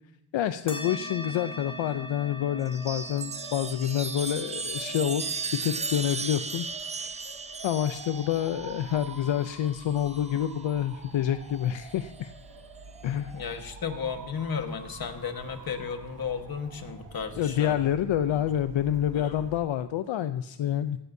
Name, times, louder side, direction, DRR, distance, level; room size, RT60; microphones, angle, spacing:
voice 1, 0.3-5.2 5.5-6.6 6.9-7.2 7.6-12.3 13.0-13.3 17.4-21.0, left 10 dB, 75° left, 10 dB, 0.6 m, -28 dB
sound 1, 0.7-9.6, left 1 dB, 10° left, 2.0 m, -44 dB
Chime, 2.6-10.4 11.7-12.3, right 4 dB, 15° right, 0.4 m, -36 dB
Motor vehicle (road) / Siren, 2.8-19.6, right 3 dB, 65° right, 2.4 m, -47 dB
voice 2, 13.3-17.9 18.3-18.6 19.1-19.5, left 6 dB, 50° left, 6 dB, 1.5 m, -34 dB
16.5 x 15.5 x 2.7 m, 0.81 s
wide cardioid pair, 110°, 46 cm